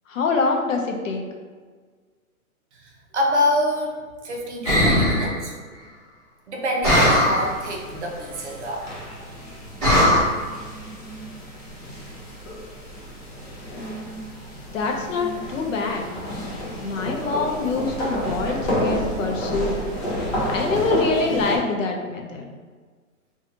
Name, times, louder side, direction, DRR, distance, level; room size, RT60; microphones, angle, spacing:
voice 1, 0.1-1.2 14.7-16.1 16.8-19.8 20.5-22.5, left 4 dB, 60° left, 2 dB, 0.6 m, -25 dB
voice 2, 2.8-4.0 4.2-5.5 6.5-8.9, equal, 50° right, 0 dB, 0.6 m, -26 dB
sound 1, 4.6-5.3 6.8-7.5 9.8-10.2, left 1 dB, 15° right, 1.0 m, -18 dB
sound 2, 7.4-21.6, equal, 45° left, 1.0 m, -31 dB
2.6 x 2.3 x 2.7 m, 1.5 s
hypercardioid pair, 160°, 43 cm